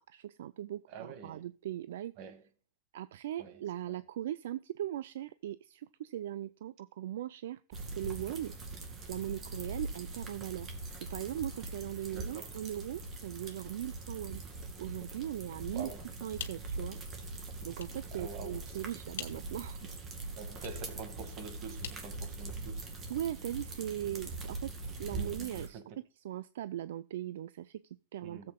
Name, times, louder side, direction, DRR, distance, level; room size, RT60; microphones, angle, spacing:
voice 1, 0.1-2.1 2.9-8.6 9.1-10.7 11.0-14.4 14.8-15.9 16.2-17.0 17.6-20.0 23.1-25.8 26.2-28.5, right 12 dB, 80° right, 0.3 m, -39 dB
voice 2, 0.9-1.5 2.2-2.4 3.4-3.6 3.9-4.0 12.1-12.5 15.7-16.0 18.1-18.8 20.4-22.8 25.1-25.9 28.2-28.5, right 5 dB, 55° right, 1.8 m, -46 dB
sound 1, 7.7-25.7, right 2 dB, 30° right, 2.2 m, -42 dB
sound 2, 16.1-22.9, left 10 dB, 85° left, 1.2 m, -50 dB
17.5 x 7.7 x 2.2 m
supercardioid pair, 130°, 0 cm